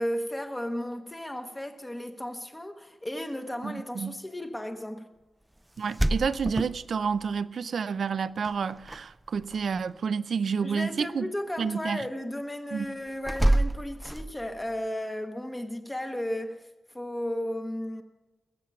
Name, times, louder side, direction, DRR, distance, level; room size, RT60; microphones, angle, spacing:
voice 1, 0.0-5.1 10.6-16.7 16.9-18.0, left 1 dB, 10° left, 0.9 m, -34 dB
voice 2, 3.6-4.1 5.8-11.2 11.6-12.0 12.7-12.9, right 6 dB, 65° right, 0.5 m, -29 dB
sound 1, 5.8-7.3 8.4-9.0 9.3-9.8 13.2-14.6, right 1 dB, 5° right, 0.4 m, -27 dB
21.0 x 8.1 x 5.8 m
wide cardioid pair, 175°, 0 cm